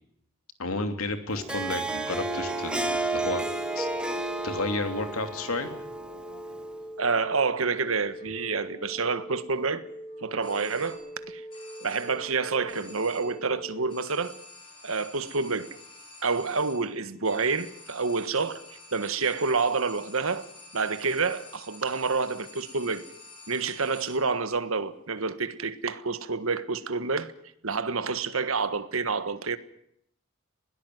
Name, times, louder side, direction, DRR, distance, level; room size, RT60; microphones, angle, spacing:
voice 1, 0.6-3.4 3.7-3.9 4.4-5.7, left 2 dB, 90° left, 2.9 m, -31 dB
Harp, 1.3-6.8, right 2 dB, 5° right, 1.9 m, -32 dB
sound 1, 1.5-13.9, right 1 dB, 45° left, 4.5 m, -43 dB
voice 2, 7.0-9.8 10.2-11.0 11.3-11.4 11.8-14.3 14.8-15.7 16.2-20.5 20.7-23.0 23.5-27.3 27.6-29.6, right 4 dB, 75° right, 1.5 m, -28 dB
sound 2, 10.4-11.2 11.5-12.3 12.7-13.5 13.9-24.4, left 2 dB, 25° left, 6.0 m, -49 dB
21.0 x 18.0 x 9.4 m
head